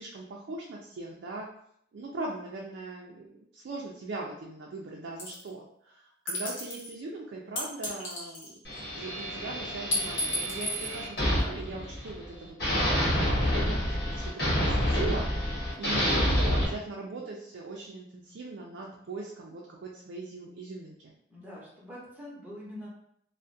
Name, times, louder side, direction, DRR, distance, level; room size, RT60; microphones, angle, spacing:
voice 1, 0.0-1.5 1.9-8.6 9.0-12.9 13.3-13.8 14.1-21.1, right 3 dB, 70° right, -2 dB, 0.3 m, -40 dB
sound 1, 5.2-5.5 6.3-6.9 7.6-8.8 9.9-11.0, left 1 dB, 80° left, 0.9 m, -32 dB
sound 2, 8.6-12.3 12.6-16.7, equal, 55° left, 1.0 m, -28 dB
voice 2, 21.3-22.9, left 1 dB, 10° right, -6 dB, 0.7 m, -44 dB
2.3 x 2.1 x 2.5 m, 0.70 s
head